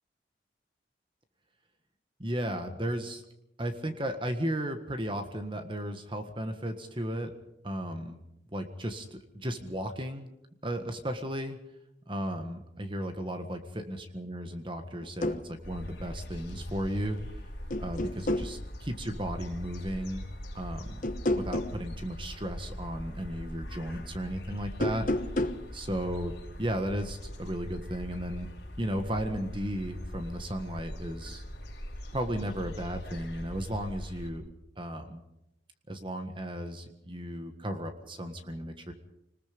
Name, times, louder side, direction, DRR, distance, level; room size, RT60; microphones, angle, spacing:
voice 1, 2.2-3.2 3.6-7.3 7.6-8.2 8.5-10.3 10.6-11.6 12.1-17.2 17.8-20.3 20.5-21.0 21.3-25.1 25.7-28.5 28.8-31.4 32.1-34.4 34.8-35.2 35.9-38.9, equal, 25° right, 7 dB, 1.6 m, -35 dB
sound 1, 15.0-15.4 17.0-17.3 17.7-18.5 21.0-21.8 24.7-25.7, left 1 dB, 45° left, 1.1 m, -30 dB
sound 2, 15.6-34.3, equal, 60° left, 5.1 m, -42 dB
25.5 x 20.0 x 5.3 m, 0.85 s
head